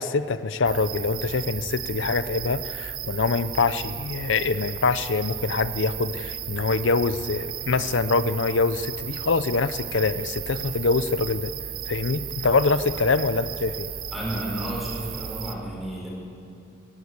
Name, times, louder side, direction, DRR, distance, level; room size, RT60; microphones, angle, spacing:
voice 1, 0.0-11.5 11.9-13.9, left 4 dB, 65° left, 13 dB, 0.6 m, -24 dB
sound 1, 0.6-15.5, right 9 dB, 45° right, 0.8 m, -35 dB
voice 2, 14.1-16.1, right 1 dB, ahead, -4 dB, 5.3 m, -32 dB
23.0 x 15.5 x 8.1 m, 2.8 s
head